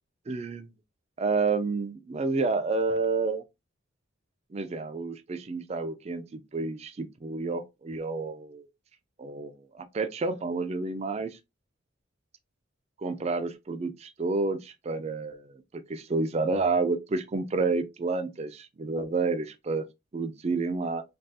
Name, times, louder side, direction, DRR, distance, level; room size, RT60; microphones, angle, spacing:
voice 1, 0.3-0.7 1.2-3.4 4.5-8.7 9.2-11.4 13.0-15.5 15.9-19.8 20.1-21.0, right 3 dB, 30° right, 0.3 m, -29 dB
3.5 x 2.3 x 2.6 m
head